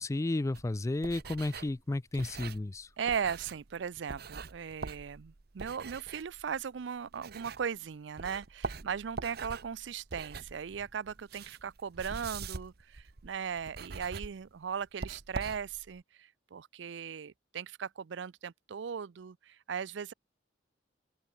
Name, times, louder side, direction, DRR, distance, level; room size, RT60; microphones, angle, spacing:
voice 1, 0.0-2.9, left 2 dB, 15° left, 0.4 m, -32 dB
sound 1, 0.5-7.9 8.2-16.0, right 4 dB, 60° right, 0.9 m, -44 dB
voice 2, 3.0-20.1, right 7 dB, 75° right, 0.5 m, -38 dB
open air
head